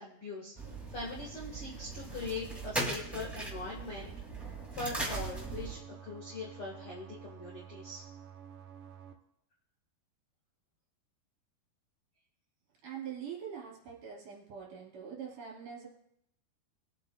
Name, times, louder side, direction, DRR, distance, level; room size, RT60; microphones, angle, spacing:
voice 1, 0.0-4.1 4.4-8.1, left 3 dB, 50° left, -3 dB, 1.7 m, -42 dB
sound 1, 0.5-5.8, right 2 dB, ahead, 0.7 m, -39 dB
sound 2, 5.1-9.1, right 8 dB, 80° right, 2.1 m, -50 dB
voice 2, 12.8-15.9, right 8 dB, 55° right, -4 dB, 4.6 m, -43 dB
22.0 x 8.3 x 2.3 m, 0.76 s
omnidirectional pair, 4.9 m